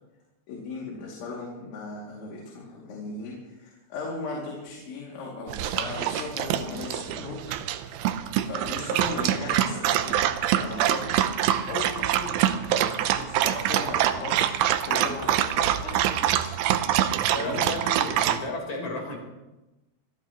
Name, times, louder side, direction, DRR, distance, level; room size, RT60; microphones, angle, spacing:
voice 1, 0.5-7.5 8.4-11.4 11.7-16.5 17.4-17.7, left 3 dB, 90° left, -3 dB, 4.9 m, -37 dB
Dog, 5.5-18.4, right 11 dB, 85° right, 2.2 m, -25 dB
voice 2, 17.3-19.2, left 1 dB, 35° left, -1 dB, 4.7 m, -33 dB
26.0 x 16.0 x 3.1 m, 1.0 s
omnidirectional pair, 5.2 m